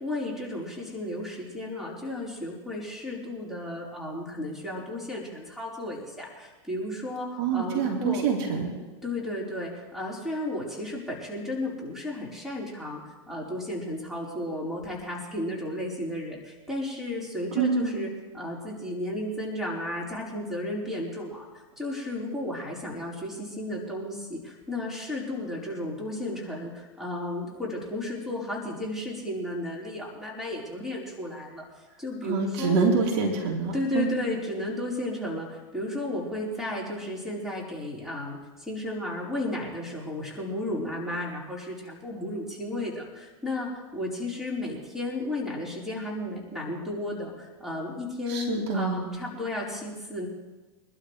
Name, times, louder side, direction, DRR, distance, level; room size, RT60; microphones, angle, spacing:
voice 1, 0.0-8.2 9.0-31.6 32.0-32.8 33.7-50.3, left 1 dB, ahead, -4 dB, 4.6 m, -33 dB
voice 2, 7.4-8.7 17.6-18.0 32.2-34.1 48.3-49.1, right 5 dB, 60° right, -1 dB, 3.9 m, -26 dB
25.0 x 12.5 x 3.3 m, 1.2 s
hypercardioid pair, 120°, 16 cm